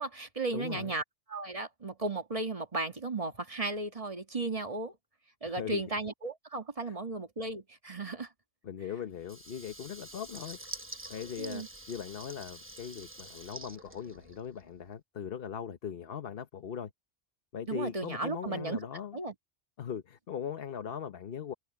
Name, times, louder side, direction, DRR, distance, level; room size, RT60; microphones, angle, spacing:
voice 1, 0.0-4.9 5.4-8.3 11.4-11.7 17.7-18.8 19.1-19.3, right 2 dB, 30° right, 1.8 m, -35 dB
voice 2, 0.5-0.9 5.4-5.8 6.9-7.0 8.6-10.6 11.1-16.9 17.5-19.2 19.8-21.5, left 8 dB, 55° left, 1.1 m, -40 dB
Water tap faucet / Liquid, 9.2-14.7, right 1 dB, 10° right, 1.0 m, -47 dB
omnidirectional pair, 1.2 m